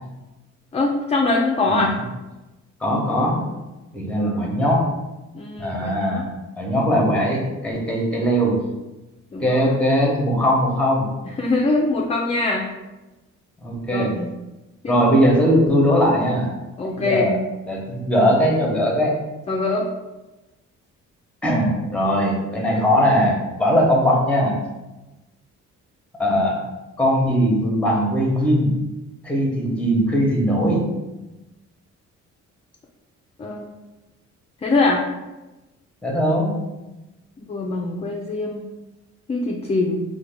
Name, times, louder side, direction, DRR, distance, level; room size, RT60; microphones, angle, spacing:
voice 1, 0.7-1.9 5.3-6.2 9.3-9.6 11.2-12.7 13.9-14.3 14.8-14.9 16.8-17.4 19.5-19.9 33.4-33.7 34.6-35.0 37.4-38.7 39.3-40.0, left 3 dB, 20° left, -1 dB, 0.3 m, -23 dB
voice 2, 2.8-3.4 3.9-4.9 5.6-6.3 6.6-8.6 9.4-11.1 13.6-14.1 14.9-16.5 16.9-17.4 17.7-19.1 21.4-24.6 26.2-26.6 27.0-28.7 29.2-30.8 36.0-36.5, equal, 5° left, -1 dB, 0.8 m, -20 dB
3.3 x 2.2 x 3.3 m, 1.1 s
cardioid pair, 90°, 30 cm